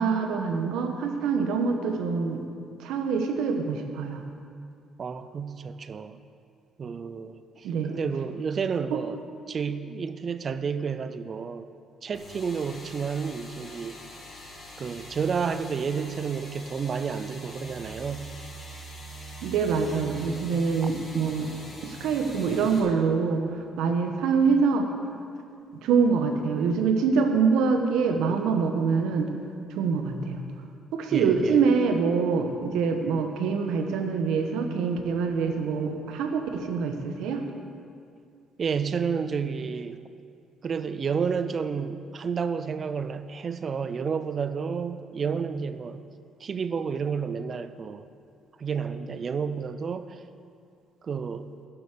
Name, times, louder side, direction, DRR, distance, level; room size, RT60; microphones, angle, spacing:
voice 1, 0.0-2.4 2.8-4.2 7.6-7.9 19.4-21.5 21.8-23.4 23.8-24.9 25.8-29.3 29.8-30.4 30.9-37.4, right 5 dB, 80° right, 5 dB, 1.2 m, -25 dB
voice 2, 5.0-6.2 6.8-9.2 9.5-11.7 12.0-14.0 14.8-18.3 31.1-31.6 38.6-40.0 40.6-46.0 46.4-48.1 48.6-50.2 51.0-51.5, right 6 dB, 30° right, 12 dB, 0.5 m, -30 dB
sound 1, 12.1-22.8, equal, 25° left, 2.5 m, -44 dB
11.5 x 8.1 x 6.7 m, 2.4 s
cardioid pair, 150°, 0 cm